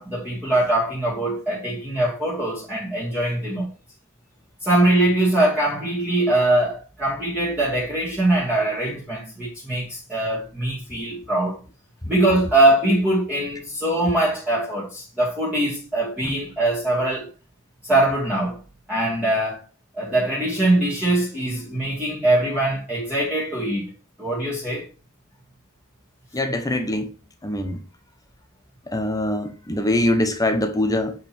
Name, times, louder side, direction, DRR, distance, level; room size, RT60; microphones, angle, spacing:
voice 1, 0.0-3.7 4.6-11.6 12.0-17.3 17.8-18.6 18.9-19.6 20.0-23.9 24.2-24.9, right 1 dB, 10° right, 2.3 m, -22 dB
voice 2, 26.3-27.1 27.4-27.8 28.9-31.1, left 1 dB, 15° left, 0.9 m, -23 dB
7.8 x 5.4 x 4.4 m
head